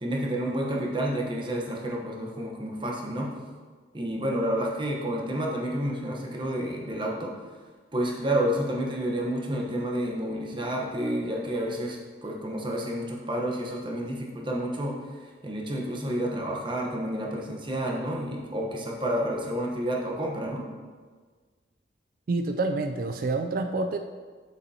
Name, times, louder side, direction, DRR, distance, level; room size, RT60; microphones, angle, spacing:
voice 1, 0.0-3.3 3.9-7.3 7.9-15.0 15.4-20.7, right 1 dB, 25° right, -1 dB, 1.0 m, -30 dB
voice 2, 22.3-24.0, right 3 dB, 50° right, 7 dB, 0.3 m, -27 dB
8.1 x 6.8 x 2.8 m, 1.5 s
head